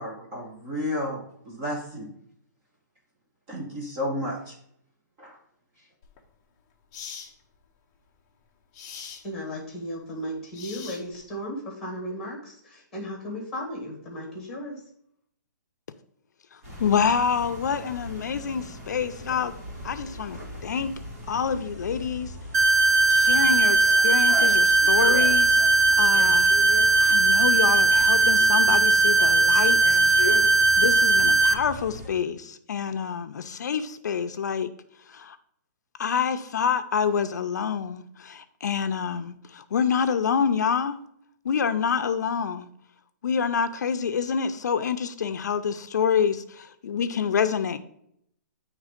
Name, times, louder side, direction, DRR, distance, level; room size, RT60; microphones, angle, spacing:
voice 1, 0.0-2.1 3.5-4.6 5.2-5.4, left 1 dB, 15° right, 0.7 m, -32 dB
sound 1, 6.0-6.2 6.9-7.3 8.7-9.2 10.5-11.3, left 6 dB, 20° left, 0.5 m, -41 dB
voice 2, 9.2-14.8, equal, ahead, 1.6 m, -35 dB
sound 2, 16.6-32.1, equal, 50° right, 2.6 m, -38 dB
voice 3, 16.8-19.5 19.8-20.9 21.3-22.3 23.1-25.6 26.0-26.6 27.0-30.2 30.8-34.7 35.1-35.4 36.0-41.0 41.4-42.7 43.2-47.8, left 7 dB, 65° left, 0.5 m, -27 dB
sound 3, 22.5-31.5, right 2 dB, 70° right, 0.7 m, -19 dB
8.3 x 3.3 x 4.9 m
hypercardioid pair, 175°, 10 cm